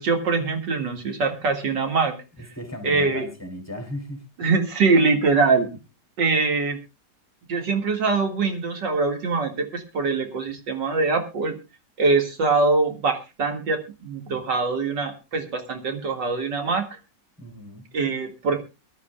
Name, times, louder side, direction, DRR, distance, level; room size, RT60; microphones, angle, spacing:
voice 1, 0.0-2.2 2.8-3.2 4.4-5.7 6.2-6.8 7.5-11.6 12.0-16.9 17.9-18.6, right 4 dB, 80° right, 5 dB, 2.7 m, -23 dB
voice 2, 2.4-4.3 17.4-17.9, left 1 dB, 10° left, 6 dB, 3.1 m, -36 dB
24.0 x 12.5 x 2.3 m, 0.27 s
omnidirectional pair, 1.9 m